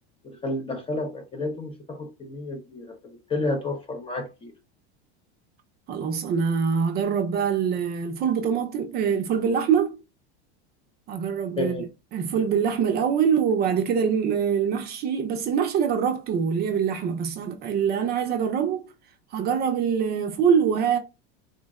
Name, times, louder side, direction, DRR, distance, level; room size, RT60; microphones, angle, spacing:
voice 1, 0.2-4.5 11.6-11.9, left 2 dB, 15° left, 0.5 m, -31 dB
voice 2, 5.9-10.0 11.1-18.9 19.3-21.0, right 7 dB, 30° right, 0.5 m, -24 dB
3.7 x 2.1 x 3.5 m
supercardioid pair, 150°, 31 cm